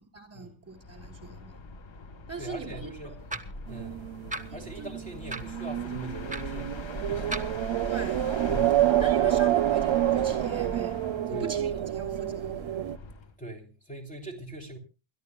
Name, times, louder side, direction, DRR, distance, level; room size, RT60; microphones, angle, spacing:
voice 1, 0.1-1.6 2.3-3.2 4.5-4.9 7.9-8.2 9.0-11.0 11.3-12.7, right 4 dB, 30° right, 3.6 m, -40 dB
sound 1, 0.7-13.4, left 2 dB, 70° left, 1.7 m, -41 dB
voice 2, 2.4-3.2 3.7-4.0 4.5-6.8 7.1-7.4 8.5-9.0 11.3-11.5 13.4-14.8, right 1 dB, 15° left, 3.2 m, -41 dB
sound 2, 3.3-3.6 4.3-4.5 5.3-5.5 6.3-6.4 7.3-7.5, right 2 dB, 15° right, 1.3 m, -35 dB
sound 3, 3.7-13.0, right 13 dB, 85° right, 0.6 m, -28 dB
29.0 x 13.5 x 2.3 m
wide cardioid pair, 95°, 47 cm